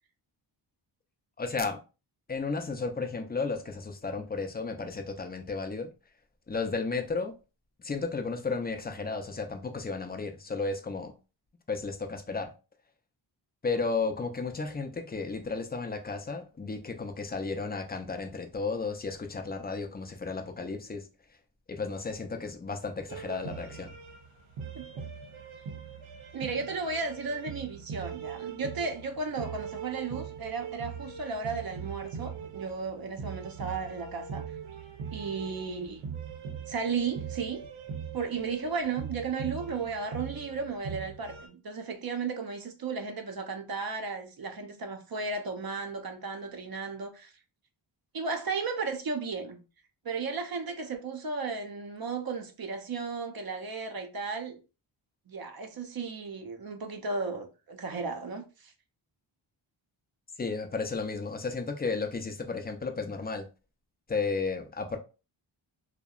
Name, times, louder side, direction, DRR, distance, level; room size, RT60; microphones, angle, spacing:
voice 1, 1.4-1.8 2.3-5.9 6.5-7.3 7.8-11.1 11.7-12.5 13.6-21.1 21.7-23.9 60.4-63.5 64.1-65.0, left 4 dB, 20° left, 0.4 m, -33 dB
sound 1, 23.1-41.5, right 6 dB, 90° right, 0.7 m, -41 dB
voice 2, 26.3-34.4 35.1-36.0 36.7-37.6 38.1-47.3 48.1-49.6 50.0-54.6 55.3-58.7, right 4 dB, 50° right, 0.6 m, -34 dB
2.6 x 2.1 x 2.3 m
cardioid pair, 65°, 48 cm